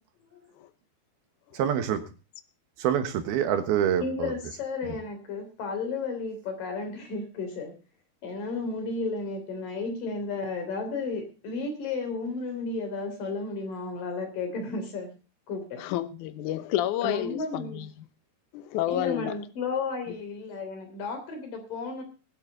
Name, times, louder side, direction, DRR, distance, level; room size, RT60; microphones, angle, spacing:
voice 1, 1.6-2.0 2.8-4.3 4.9-5.0, right 9 dB, 75° right, 3.2 m, -26 dB
voice 2, 4.0-7.7 8.2-15.1 15.5-15.8 17.0-17.9 18.9-22.0, left 4 dB, 55° left, 4.7 m, -33 dB
voice 3, 15.8-17.9 18.5-19.3, left 13 dB, 75° left, 1.9 m, -29 dB
21.5 x 8.3 x 3.9 m
omnidirectional pair, 4.6 m